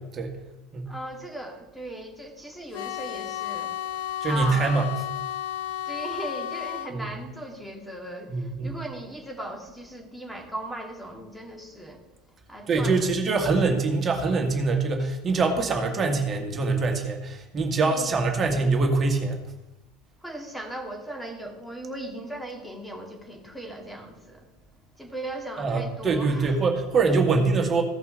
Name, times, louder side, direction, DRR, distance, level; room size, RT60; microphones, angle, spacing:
voice 1, 0.9-4.9 5.9-12.0 12.5-13.1 17.8-18.2 20.2-24.5 25.0-26.6, right 1 dB, 5° left, 2.0 m, -38 dB
sound 1, 2.7-6.9, left 12 dB, 70° left, 0.8 m, -33 dB
voice 2, 4.2-4.9 6.9-7.1 8.3-8.8 12.7-19.4 25.6-27.8, right 3 dB, 30° right, 1.8 m, -24 dB
16.0 x 5.5 x 3.9 m
hypercardioid pair, 95°, 0 cm